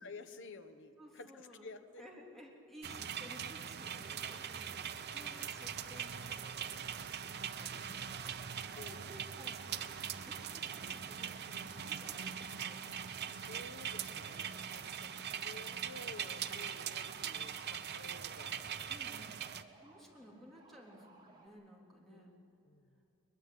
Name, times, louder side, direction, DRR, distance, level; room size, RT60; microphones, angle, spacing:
voice 1, 0.0-2.0 5.1-5.6 8.8-9.1 13.3-18.7 22.1-23.0, left 3 dB, 55° left, 9 dB, 1.3 m, -53 dB
voice 2, 1.0-1.7 2.0-12.9 18.9-22.3, equal, ahead, -2 dB, 3.4 m, -56 dB
sound 1, 2.8-19.6, right 8 dB, 50° right, 0.8 m, -42 dB
sound 2, 4.0-21.5, right 2 dB, 20° right, 3.2 m, -62 dB
22.0 x 21.5 x 8.5 m, 2.9 s
head